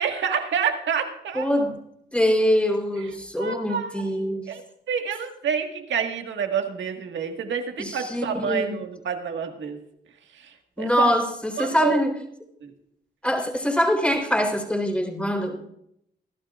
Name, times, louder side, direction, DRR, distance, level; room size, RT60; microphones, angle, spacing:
voice 1, 0.0-1.5 3.0-3.1 3.4-4.6 4.9-9.8 10.3-11.1 11.6-12.0 12.6-12.7, right 7 dB, 80° right, 4 dB, 1.7 m, -28 dB
voice 2, 1.3-1.8 2.1-4.5 7.8-8.8 10.8-12.1 13.2-15.6, equal, 5° left, 2 dB, 3.7 m, -24 dB
23.0 x 12.0 x 2.5 m, 0.76 s
cardioid pair, 60°, 19 cm